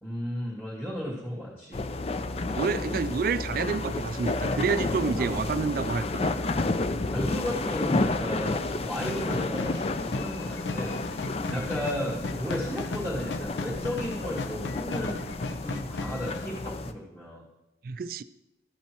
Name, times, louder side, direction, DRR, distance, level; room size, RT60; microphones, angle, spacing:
voice 1, 0.0-1.8 5.2-5.5 7.1-11.0 11.5-15.3 15.6-17.4, equal, 10° left, -8 dB, 2.1 m, -34 dB
sound 1, 1.7-16.9, left 2 dB, 35° left, 0.4 m, -31 dB
voice 2, 2.4-6.3 11.5-11.7 17.8-18.2, right 5 dB, 50° right, 15 dB, 0.3 m, -29 dB
sound 2, 9.0-16.5, left 2 dB, 80° left, 0.6 m, -36 dB
13.0 x 8.4 x 3.0 m, 0.97 s
head